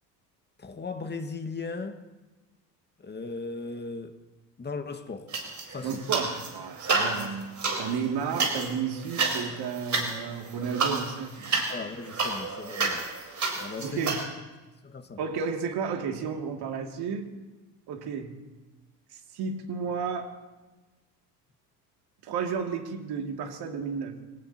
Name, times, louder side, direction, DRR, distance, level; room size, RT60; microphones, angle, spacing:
voice 1, 0.6-2.0 3.0-4.2 4.6-5.3 5.7-6.2 11.7-13.1 13.5-14.1 14.8-15.2, left 4 dB, 20° left, 1.8 m, -37 dB
sound 1, 5.3-6.5 6.8-14.2, right 4 dB, 35° right, 4.4 m, -30 dB
voice 2, 5.8-7.5 7.8-11.6 13.8-14.2 15.2-17.3 17.9-18.4 19.1-20.3 22.2-24.2, right 6 dB, 50° right, 2.7 m, -32 dB
25.0 x 18.0 x 3.0 m
hypercardioid pair, 70°, 50 cm